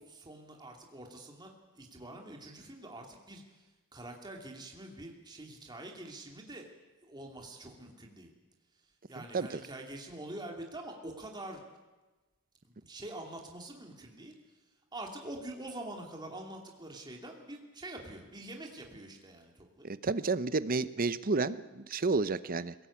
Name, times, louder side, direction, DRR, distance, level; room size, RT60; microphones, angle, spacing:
voice 1, 0.0-6.7 7.0-8.3 8.8-11.6 12.6-14.6 14.9-19.9, right 1 dB, 20° right, 1 dB, 2.6 m, -46 dB
voice 2, 9.2-9.6 19.8-22.7, right 3 dB, 40° right, 15 dB, 0.7 m, -31 dB
21.5 x 18.0 x 8.5 m, 1.2 s
head